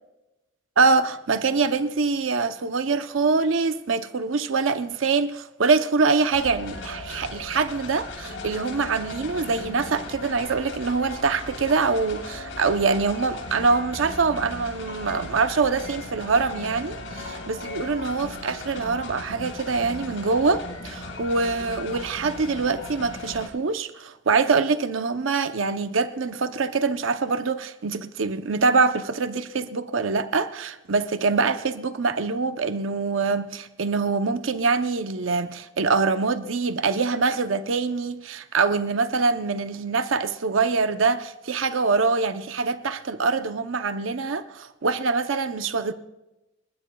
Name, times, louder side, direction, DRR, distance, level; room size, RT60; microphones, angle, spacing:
voice 1, 0.8-45.9, right 4 dB, 85° right, 0.7 m, -24 dB
sound 1, 6.3-23.5, left 2 dB, 85° left, 4.2 m, -37 dB
20.5 x 20.5 x 2.3 m
head